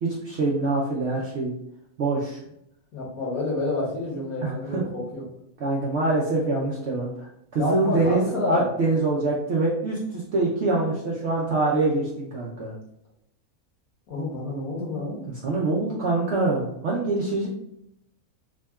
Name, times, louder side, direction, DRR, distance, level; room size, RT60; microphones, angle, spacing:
voice 1, 0.0-1.5 2.0-2.4 4.4-4.8 5.6-12.7 15.3-17.5, right 2 dB, 70° right, -4 dB, 0.6 m, -25 dB
voice 2, 2.9-5.2 7.6-8.7 14.1-15.2, left 2 dB, 70° left, -2 dB, 1.3 m, -29 dB
3.5 x 2.2 x 2.2 m, 0.79 s
omnidirectional pair, 1.6 m